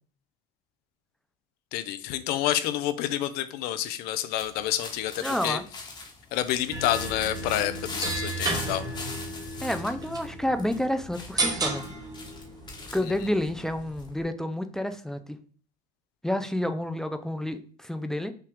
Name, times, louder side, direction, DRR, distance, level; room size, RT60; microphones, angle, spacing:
voice 1, 1.7-5.6 6.3-8.8, left 12 dB, 70° left, 12 dB, 0.5 m, -28 dB
sound 1, 4.3-14.2, left 3 dB, 25° left, 1.1 m, -41 dB
voice 2, 5.2-5.6 9.6-11.9 12.9-15.4 16.2-18.3, left 1 dB, 5° left, 9 dB, 0.3 m, -29 dB
sound 2, 6.7-13.9, right 2 dB, 25° right, 1.0 m, -34 dB
5.7 x 2.4 x 3.4 m, 0.44 s
supercardioid pair, 115°, 17 cm